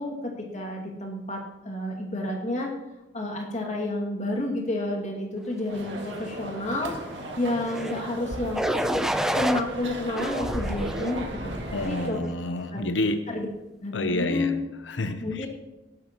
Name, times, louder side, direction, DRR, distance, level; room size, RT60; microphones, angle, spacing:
voice 1, 0.0-2.7 3.1-6.9 7.4-8.7 9.3-12.3 12.7-12.9 13.3-13.5 13.8-14.7 15.2-15.5, left 1 dB, 40° left, 2.3 m, -30 dB
sound 1, 5.7-12.1, right 1 dB, 75° right, 2.0 m, -36 dB
sound 2, 7.6-8.0 8.5-9.6 10.2-11.2 11.8-12.2, equal, 5° right, 0.5 m, -28 dB
voice 2, 11.7-13.3 13.9-14.6 14.9-15.5, left 2 dB, 80° left, 0.8 m, -28 dB
18.0 x 11.0 x 3.0 m
head